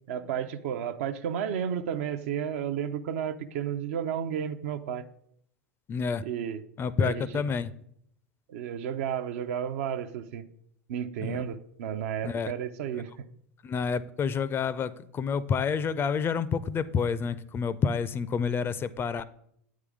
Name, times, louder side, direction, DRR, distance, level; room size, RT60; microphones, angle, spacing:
voice 1, 0.1-5.0 6.2-6.6 7.0-7.4 8.5-10.4 10.9-13.1, right 8 dB, 70° right, 0.5 m, -32 dB
voice 2, 5.9-6.2 6.8-7.7 11.2-11.4 12.2-12.5 13.6-19.2, left 6 dB, 30° left, 0.4 m, -29 dB
8.3 x 3.7 x 4.9 m
hypercardioid pair, 85°, 8 cm